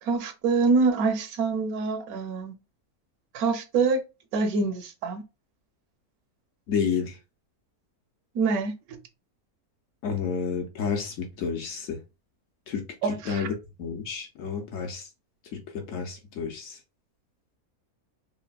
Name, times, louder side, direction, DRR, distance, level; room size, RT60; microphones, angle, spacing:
voice 1, 0.0-2.5 3.3-4.0 4.3-5.2 8.3-9.0 13.0-13.5, right 4 dB, 75° right, 1.0 m, -25 dB
voice 2, 6.7-7.2 10.0-12.0 12.7-13.5 13.8-15.1 15.5-16.8, left 6 dB, 65° left, 0.9 m, -30 dB
3.3 x 2.0 x 2.2 m
omnidirectional pair, 1.6 m